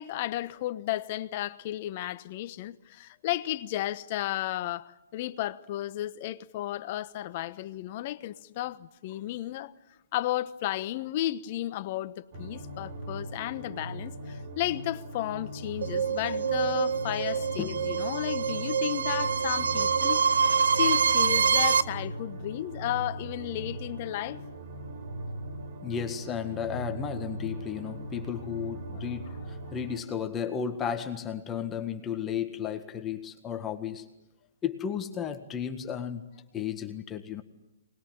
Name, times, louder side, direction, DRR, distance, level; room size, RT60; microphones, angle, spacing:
voice 1, 0.0-9.7 10.1-20.2 20.6-24.4 28.9-29.0, left 14 dB, 40° left, 1.1 m, -33 dB
sound 1, 12.3-30.0, right 1 dB, 45° right, 6.3 m, -40 dB
sound 2, 15.8-21.8, right 6 dB, 70° right, 0.9 m, -26 dB
voice 2, 25.8-34.1 34.6-36.2 36.5-37.4, left 8 dB, 20° left, 1.7 m, -34 dB
24.0 x 20.5 x 8.9 m
figure-of-eight pair, 125°, 0 cm